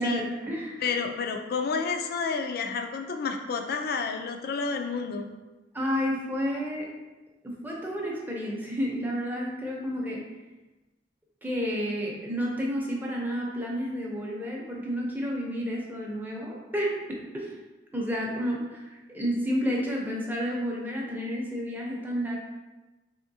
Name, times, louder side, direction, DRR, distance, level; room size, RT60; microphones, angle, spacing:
voice 1, 0.0-0.8 5.7-6.9 7.4-10.2 11.4-17.5 17.9-22.4, equal, 10° right, -2 dB, 0.6 m, -31 dB
voice 2, 0.8-5.3, left 5 dB, 55° left, 5 dB, 0.4 m, -30 dB
3.5 x 3.5 x 2.6 m, 1.2 s
head